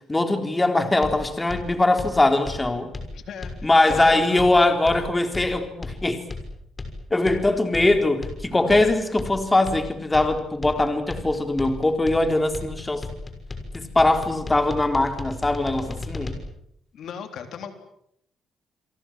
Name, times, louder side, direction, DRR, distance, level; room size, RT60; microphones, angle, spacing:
voice 1, 0.1-2.9 3.6-6.2 7.1-13.0 13.7-16.3, left 2 dB, 15° left, 7 dB, 3.9 m, -21 dB
sound 1, 1.0-16.4, left 3 dB, 30° left, 6.2 m, -35 dB
voice 2, 3.1-4.5 16.9-17.7, left 7 dB, 70° left, 7 dB, 3.8 m, -36 dB
29.0 x 23.5 x 7.6 m, 0.76 s
cardioid pair, 90°, 0 cm